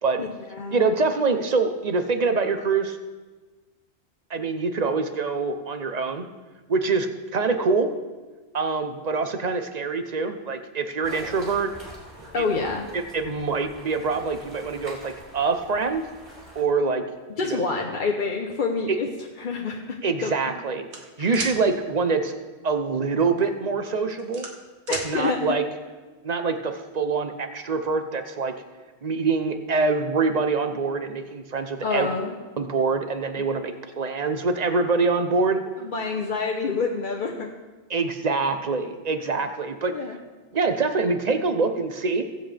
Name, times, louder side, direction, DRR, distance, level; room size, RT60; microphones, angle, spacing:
voice 1, 0.2-0.9 12.3-12.9 17.4-19.1 19.4-20.3 21.2-21.5 24.9-25.6 31.8-32.4 35.8-37.5 39.9-40.2, left 4 dB, 50° left, 1 dB, 0.9 m, -27 dB
voice 2, 0.7-3.0 4.3-6.3 6.7-7.9 8.5-11.7 12.4-12.5 12.9-16.0 16.5-17.0 17.5-17.6 18.9-19.0 20.0-20.8 21.2-22.3 22.6-24.5 24.9-25.6 26.2-28.5 29.0-32.1 32.6-35.6 37.9-39.9 40.5-42.2, right 4 dB, 40° right, 7 dB, 0.9 m, -25 dB
sound 1, 11.0-16.6, equal, 15° right, 4.5 m, -45 dB
sound 2, 20.9-21.6 23.2-23.4 23.9-25.1, right 3 dB, 80° right, 1.6 m, -33 dB
21.0 x 7.8 x 3.4 m, 1.3 s
omnidirectional pair, 1.1 m